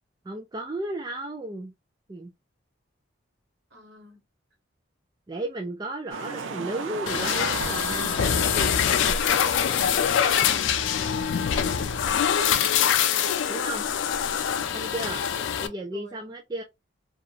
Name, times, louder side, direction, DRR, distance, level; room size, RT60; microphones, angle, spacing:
voice 1, 0.2-1.7 2.1-2.3 5.3-9.8 13.5-13.9 14.7-15.2 15.6-16.6, right 1 dB, 20° right, 0.3 m, -34 dB
voice 2, 3.7-4.2 14.9-15.5 15.9-16.3, equal, 60° right, 1.1 m, -48 dB
sound 1, 6.1-12.8, right 5 dB, 80° right, 0.5 m, -38 dB
sound 2, 7.1-15.7, left 8 dB, 70° left, 0.3 m, -24 dB
2.8 x 2.4 x 2.4 m
head